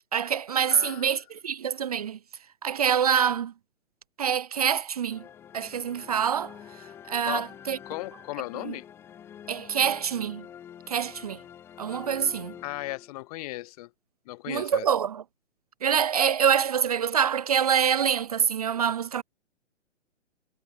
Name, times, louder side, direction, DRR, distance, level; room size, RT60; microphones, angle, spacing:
voice 1, 0.1-2.2 2.6-3.5 4.2-5.2 5.5-6.6 7.1-7.8 8.7-8.8 9.5-10.4 10.9-11.4 11.8-12.5 14.5-15.2 15.8-19.2, right 8 dB, 30° right, 0.6 m, -25 dB
voice 2, 0.7-1.1 7.2-7.5 7.9-8.9 12.6-13.9 14.3-14.9, left 19 dB, 30° left, 5.4 m, -36 dB
sound 1, 5.1-13.4, left 9 dB, 5° left, 0.9 m, -47 dB
hypercardioid pair, 165°, 37 cm